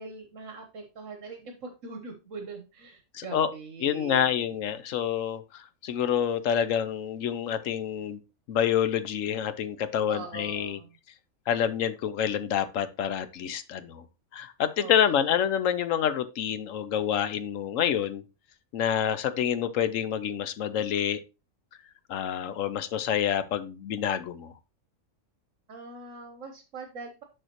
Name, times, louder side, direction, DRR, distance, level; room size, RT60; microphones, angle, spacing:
voice 1, 0.0-4.5 10.1-10.9 14.8-15.4 25.7-27.2, right 4 dB, 70° right, 4 dB, 1.4 m, -42 dB
voice 2, 3.1-3.5 3.8-8.2 8.5-10.8 11.5-14.0 14.3-18.2 18.7-21.2 22.1-24.5, left 9 dB, 70° left, 13 dB, 1.0 m, -27 dB
6.6 x 6.5 x 2.9 m, 0.28 s
omnidirectional pair, 1.4 m